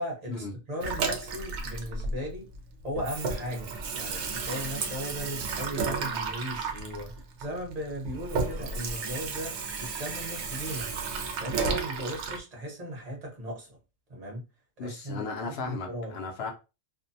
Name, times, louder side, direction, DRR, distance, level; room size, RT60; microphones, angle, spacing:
voice 1, 0.0-2.5 2.8-9.5 9.8-10.9 11.4-13.8 14.1-14.4 14.8-16.1, equal, 35° right, 0.9 m, -37 dB
Water tap faucet / Sink (filling or washing), 0.8-2.6 2.9-12.4, right 4 dB, 70° right, 0.8 m, -33 dB
voice 2, 14.8-16.5, left 4 dB, 60° left, 0.8 m, -35 dB
2.6 x 2.1 x 2.6 m
omnidirectional pair, 1.3 m